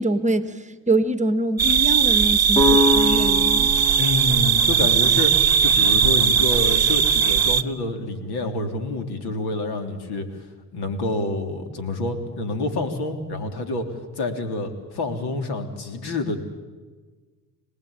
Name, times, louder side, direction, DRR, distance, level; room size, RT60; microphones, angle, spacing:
voice 1, 0.0-3.7, right 1 dB, 15° right, 11 dB, 1.3 m, -24 dB
sound 1, 1.6-7.6, right 7 dB, 40° right, 1.0 m, -18 dB
sound 2, 2.5-6.3, left 1 dB, 10° left, 3.4 m, -25 dB
voice 2, 4.0-5.3 5.6-10.3 10.7-13.9 14.2-16.4, left 2 dB, 70° left, 7 dB, 3.5 m, -27 dB
26.5 x 19.0 x 8.8 m, 1.4 s
cardioid pair, 100°, 40 cm